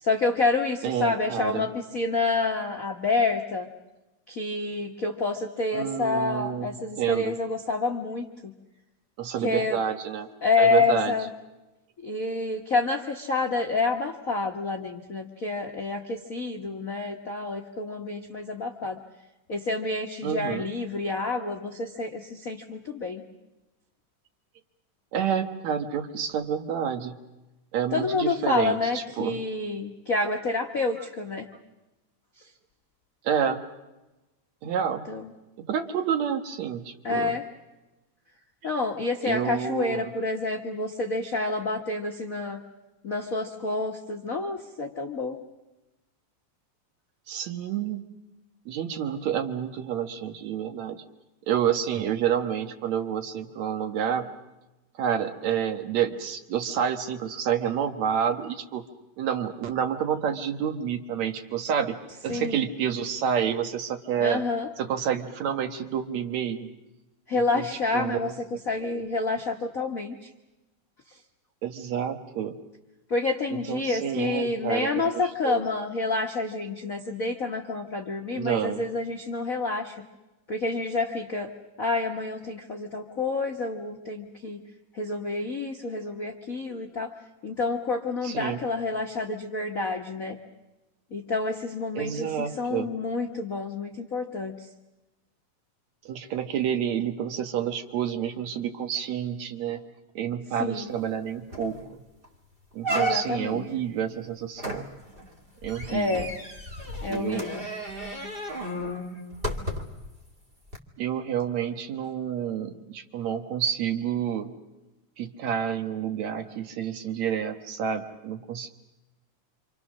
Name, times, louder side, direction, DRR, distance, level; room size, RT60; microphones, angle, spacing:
voice 1, 0.0-3.7 4.3-8.5 9.4-9.8 10.4-11.3 12.0-19.0 19.5-23.2 27.9-31.5 35.1-35.3 37.0-37.4 38.6-42.6 43.0-45.4 62.3-62.7 64.2-64.7 67.3-68.3 68.7-70.1 73.1-80.0 80.5-81.5 81.8-84.6 84.9-87.1 87.4-90.4 91.1-94.7 100.6-100.9 102.9-103.6 105.9-106.3 107.0-107.6, left 3 dB, 50° left, 2 dB, 1.0 m, -28 dB
voice 2, 0.8-1.7 5.7-7.3 9.2-10.3 10.6-11.2 20.2-20.7 25.1-27.2 27.7-29.4 33.2-33.6 34.6-35.0 35.7-37.3 39.2-40.1 47.3-48.0 48.7-51.0 51.4-54.3 55.0-58.8 59.2-62.0 62.2-64.4 64.8-66.7 67.3-67.7 67.9-68.3 68.8-69.0 71.6-72.6 73.5-75.1 75.4-75.6 78.4-78.8 88.2-88.6 91.9-92.9 96.1-99.8 100.2-101.8 102.7-104.9 105.6-106.2 107.1-107.4 111.0-114.5 115.2-118.7, right 8 dB, 65° right, 7 dB, 2.4 m, -29 dB
sound 1, 101.1-101.2 101.5-101.8 102.2-102.3 102.8-103.6 104.6-110.1 110.7-110.8, right 1 dB, 20° right, 1.8 m, -33 dB
27.5 x 27.0 x 6.3 m, 1.0 s
omnidirectional pair, 3.6 m